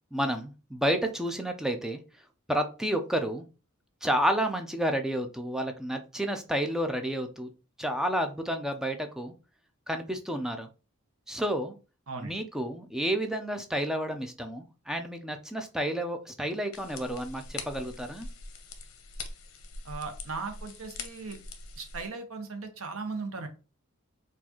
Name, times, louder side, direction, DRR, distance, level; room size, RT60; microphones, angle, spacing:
voice 1, 0.1-2.0 2.5-3.4 4.0-7.5 7.8-9.3 9.9-10.7 11.3-11.8 12.2-18.3, equal, ahead, 6 dB, 0.4 m, -30 dB
sound 1, 16.7-22.1, left 3 dB, 70° left, 0.6 m, -43 dB
voice 2, 19.8-21.4 21.8-23.5, right 4 dB, 70° right, 6 dB, 0.8 m, -37 dB
4.4 x 2.4 x 2.8 m, 0.33 s
head